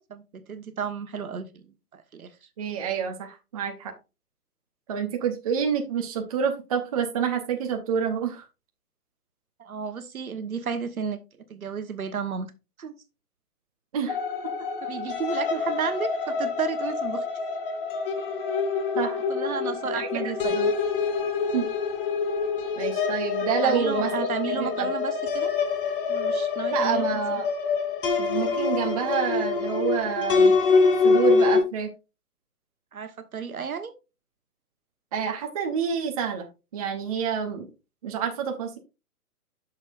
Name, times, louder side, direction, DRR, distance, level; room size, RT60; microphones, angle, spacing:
voice 1, 0.0-2.3 9.6-11.2 11.5-12.5 12.8-13.0 14.8-17.2 19.3-20.6 23.6-25.5 26.1-27.1 32.9-33.9, right 6 dB, 65° right, 9 dB, 1.3 m, -32 dB
voice 2, 2.6-3.9 4.9-8.4 13.9-14.2 18.9-19.2 19.9-20.7 21.5-21.7 22.8-24.9 26.7-27.5 28.2-30.6 31.0-31.9 35.1-36.5 36.7-37.7 38.0-38.8, right 7 dB, 25° right, 4 dB, 0.7 m, -28 dB
sound 1, 14.1-31.6, left 4 dB, 35° left, 1.1 m, -25 dB
9.5 x 6.5 x 2.5 m, 0.28 s
figure-of-eight pair, 140°, 45 cm